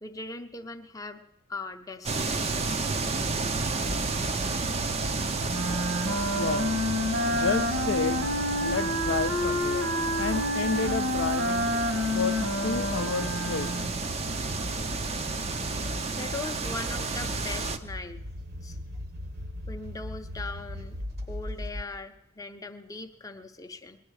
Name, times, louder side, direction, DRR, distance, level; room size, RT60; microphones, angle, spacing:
voice 1, 0.0-1.2 1.5-2.7 16.1-18.2 18.6-18.8 19.7-21.0 21.3-24.0, left 3 dB, 15° left, 6 dB, 0.6 m, -39 dB
sound 1, 2.0-17.8, right 3 dB, 30° right, 0.5 m, -32 dB
sound 2, 3.0-21.8, left 1 dB, 45° right, 0.9 m, -39 dB
Wind instrument woodwind instrument, 5.5-14.0, left 1 dB, 70° right, 1.5 m, -29 dB
voice 2, 6.3-6.8 7.3-8.3 8.6-11.7 12.1-13.7, left 5 dB, 60° left, 13 dB, 0.5 m, -31 dB
19.5 x 11.0 x 4.7 m, 0.89 s
head